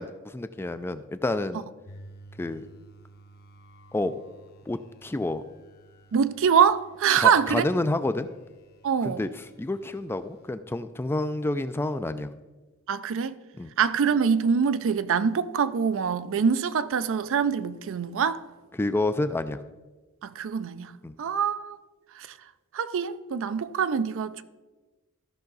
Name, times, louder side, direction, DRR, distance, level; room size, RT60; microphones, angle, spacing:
voice 1, 0.0-1.6 2.4-2.6 3.9-4.1 4.7-5.4 7.1-8.3 9.0-9.3 9.6-12.3 13.6-13.7 18.7-19.6 21.0-21.2, left 2 dB, 10° left, 0.3 m, -29 dB
sound 1, 1.9-10.5, right 1 dB, 45° left, 0.9 m, -53 dB
voice 2, 6.1-7.7 8.8-9.2 12.9-13.3 13.8-18.4 20.2-21.8 22.2-22.3 22.7-24.4, right 7 dB, 65° right, 0.4 m, -24 dB
14.0 x 5.7 x 3.9 m
head